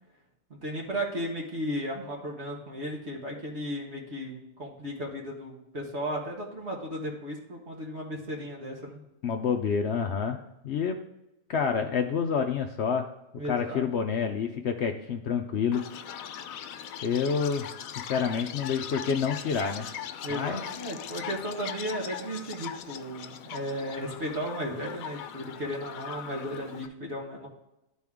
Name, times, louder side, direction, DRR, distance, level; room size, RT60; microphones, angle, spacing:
voice 1, 0.5-9.0 13.3-13.8 20.2-27.5, equal, 55° right, -2 dB, 1.7 m, -35 dB
voice 2, 9.2-11.0 11.5-13.1 13.5-15.8 17.0-17.7 18.0-19.9 20.3-20.6, left 6 dB, 60° left, 4 dB, 0.8 m, -28 dB
Chirp tweet, 15.7-26.9, left 9 dB, 80° left, 1.0 m, -40 dB
12.0 x 4.2 x 3.6 m, 0.90 s
omnidirectional pair, 1.4 m